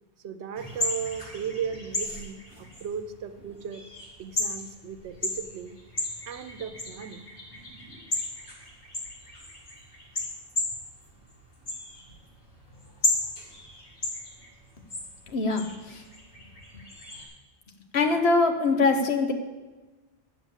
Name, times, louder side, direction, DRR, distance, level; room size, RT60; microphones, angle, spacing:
voice 1, 0.2-3.8 4.2-5.8 6.3-7.3, right 7 dB, 85° right, 10 dB, 1.0 m, -36 dB
sound 1, 0.5-17.3, left 2 dB, 50° left, 2.2 m, -35 dB
voice 2, 15.3-16.0 17.9-19.3, left 3 dB, 70° left, 6 dB, 1.2 m, -23 dB
8.4 x 6.9 x 7.2 m, 1.2 s
omnidirectional pair, 1.1 m